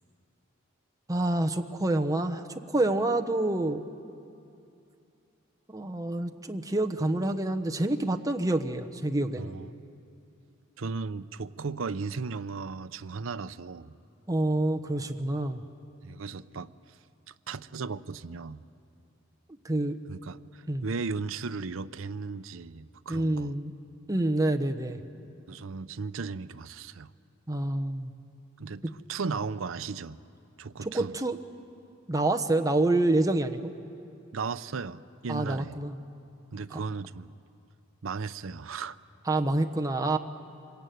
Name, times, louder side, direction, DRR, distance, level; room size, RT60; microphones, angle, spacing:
voice 1, 1.1-2.4 2.7-3.8 5.7-9.5 14.3-15.6 19.6-20.0 20.7-20.8 23.1-23.7 24.1-25.0 27.5-28.1 30.8-31.4 32.1-33.7 35.3-36.0 39.3-40.2, right 2 dB, 15° right, 6 dB, 1.0 m, -27 dB
voice 2, 9.4-9.7 10.8-13.9 16.0-16.7 17.3-18.6 20.1-23.6 25.5-27.1 28.6-28.8 29.1-30.2 30.6-31.1 34.3-35.8 36.5-37.3 38.0-39.0, right 4 dB, 75° right, 12 dB, 0.6 m, -36 dB
26.0 x 22.0 x 9.3 m, 2.6 s
head